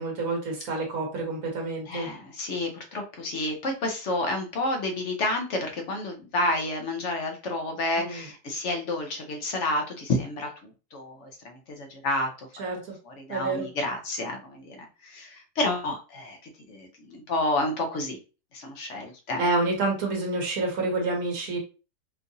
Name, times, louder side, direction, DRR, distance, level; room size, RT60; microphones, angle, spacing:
voice 1, 0.0-2.1 8.0-8.2 12.6-12.8 13.3-13.7 19.4-21.6, right 3 dB, 55° right, 0 dB, 1.6 m, -28 dB
voice 2, 1.9-12.5 13.0-16.4 16.7-18.2 18.5-19.4, left 2 dB, 55° left, 3 dB, 0.9 m, -30 dB
4.5 x 2.5 x 2.6 m, 0.33 s
omnidirectional pair, 1.8 m